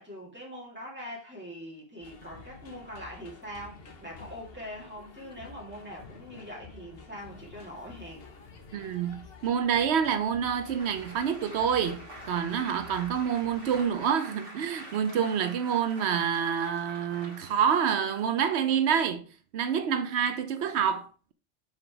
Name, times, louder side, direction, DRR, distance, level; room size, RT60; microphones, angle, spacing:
voice 1, 0.0-8.3, equal, 10° right, 1.9 m, -43 dB
sound 1, 2.0-14.0, left 4 dB, 65° left, 1.2 m, -50 dB
voice 2, 8.7-19.2 19.5-21.3, right 8 dB, 90° right, 0.9 m, -27 dB
Applause, 10.6-18.3, right 1 dB, 60° right, 1.6 m, -47 dB
5.6 x 3.9 x 4.6 m
omnidirectional pair, 1.1 m